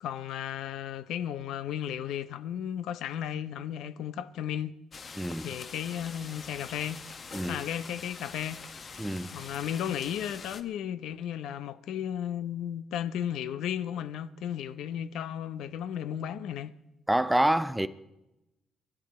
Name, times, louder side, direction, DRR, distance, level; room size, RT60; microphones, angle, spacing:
voice 1, 0.0-4.7 5.4-7.0 7.5-8.6 9.3-16.7, left 10 dB, 90° left, 0.6 m, -34 dB
sound 1, 4.9-10.6, left 5 dB, 35° left, 0.9 m, -44 dB
voice 2, 5.2-5.5 7.3-7.6 9.0-9.4 17.1-17.9, right 1 dB, 5° right, 0.5 m, -27 dB
24.5 x 11.5 x 4.2 m
cardioid pair, 135°, 0 cm